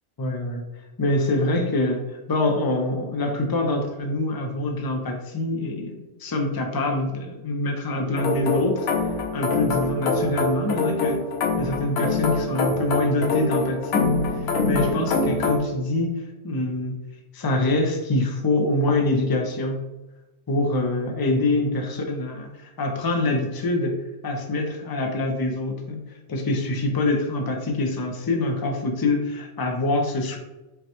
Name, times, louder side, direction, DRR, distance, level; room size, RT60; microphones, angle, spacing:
voice 1, 0.2-0.6 1.0-8.9 9.3-11.2 11.6-14.1 14.6-17.0 17.3-19.9 20.5-24.0 24.2-26.0 26.3-30.4, left 2 dB, 40° left, 3 dB, 0.3 m, -25 dB
sound 1, 8.2-15.6, left 3 dB, 65° left, 0.9 m, -24 dB
5.5 x 2.2 x 2.9 m, 1.0 s
omnidirectional pair, 1.2 m